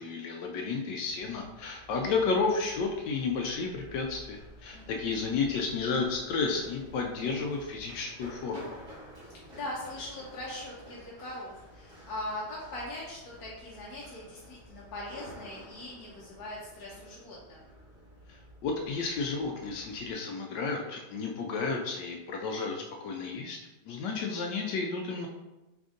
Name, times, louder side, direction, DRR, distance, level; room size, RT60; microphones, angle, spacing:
voice 1, 0.0-8.7 18.3-23.6 23.9-25.3, left 4 dB, 80° left, 1 dB, 1.2 m, -32 dB
Run, 1.0-20.1, equal, 35° right, 1.2 m, -51 dB
voice 2, 4.7-5.1 9.5-17.6, left 1 dB, 65° left, -5 dB, 1.2 m, -41 dB
3.8 x 3.4 x 3.6 m, 1.0 s
omnidirectional pair, 1.9 m